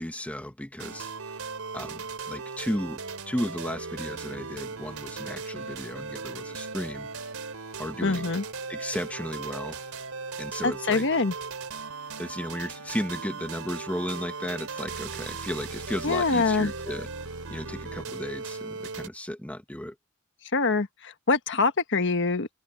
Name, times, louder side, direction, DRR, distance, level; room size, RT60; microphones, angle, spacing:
voice 1, 0.0-1.5 1.7-7.1 7.8-8.3 8.7-9.8 10.4-11.1 12.2-17.1 17.5-20.0, equal, 5° left, 1.8 m, -34 dB
sound 1, 0.8-19.1, right 4 dB, 80° right, 3.8 m, -38 dB
voice 2, 8.0-8.4 10.6-11.3 16.0-16.7 20.5-22.5, left 4 dB, 60° left, 1.4 m, -24 dB
open air
head